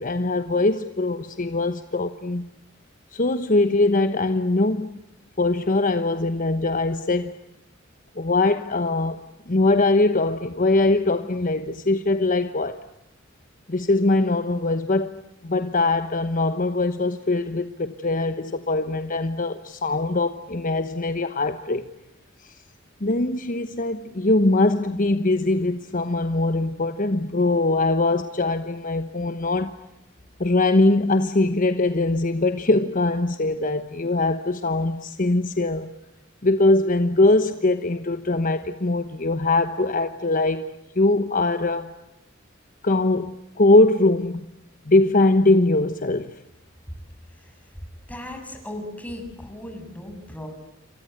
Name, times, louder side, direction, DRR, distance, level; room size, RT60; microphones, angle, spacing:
voice 1, 0.0-2.5 3.1-4.9 5.4-7.3 8.2-9.2 9.5-12.8 13.7-21.9 23.0-29.8 30.4-35.9 36.4-40.7 41.0-41.9 42.8-44.5 44.9-46.4, left 2 dB, 45° left, 1.1 m, -22 dB
voice 2, 48.1-50.5, left 1 dB, 10° left, 7.5 m, -37 dB
28.5 x 26.0 x 8.0 m
head